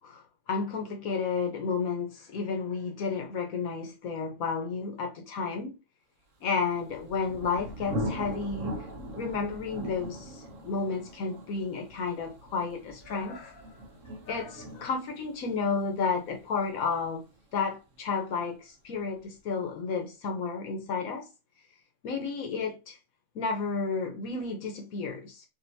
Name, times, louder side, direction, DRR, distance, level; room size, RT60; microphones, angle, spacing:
voice 1, 0.0-5.8 6.4-8.7 9.2-13.8 14.3-17.3 17.5-21.3 22.0-23.0 23.3-25.4, left 5 dB, 80° left, 1.5 m, -32 dB
Thunder, 6.6-18.1, equal, 65° right, 1.2 m, -40 dB
5.4 x 2.6 x 2.7 m
omnidirectional pair, 1.4 m